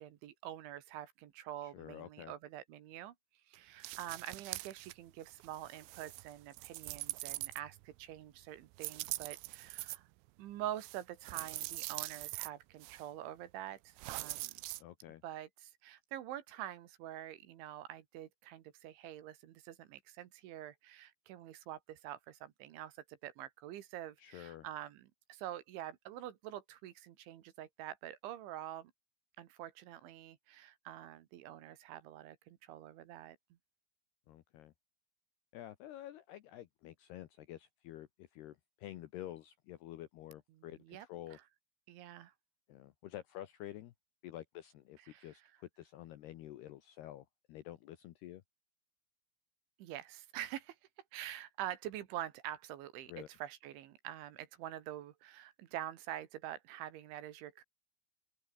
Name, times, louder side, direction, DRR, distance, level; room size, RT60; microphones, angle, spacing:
voice 1, 0.0-3.2 3.5-10.1 10.4-14.6 15.2-28.9 29.4-33.4 40.5-41.1 41.3-41.4 41.9-42.3 45.1-45.4 49.8-50.8 51.1-57.6, right 12 dB, 70° right, 3.7 m, -46 dB
voice 2, 1.6-2.3 14.8-15.2 24.2-24.7 34.3-34.7 35.5-41.4 42.7-43.9 44.2-48.4 53.1-53.3, left 13 dB, 75° left, 2.5 m, -49 dB
sound 1, 3.8-4.9 5.3-8.0 8.8-10.0 10.8-12.5 12.8-13.0 14.0-14.8, right 21 dB, 85° right, 3.4 m, -43 dB
open air
omnidirectional pair, 5.9 m